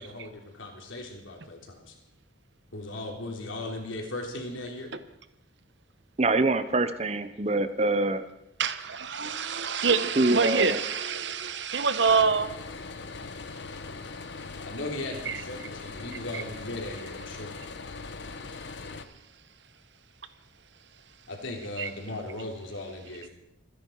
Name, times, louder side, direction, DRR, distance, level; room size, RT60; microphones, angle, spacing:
voice 1, 0.0-1.9 2.7-4.9 14.6-17.5 21.3-23.3, left 2 dB, 90° left, 1 dB, 3.4 m, -37 dB
voice 2, 6.2-8.2 10.2-10.8, right 2 dB, 35° right, 12 dB, 0.8 m, -25 dB
voice 3, 8.6-12.5 15.3-15.4 21.8-21.9, right 5 dB, 65° right, 12 dB, 1.1 m, -26 dB
sound 1, 12.0-19.0, left 4 dB, 65° left, 1.0 m, -40 dB
26.5 x 10.5 x 4.7 m, 0.83 s
head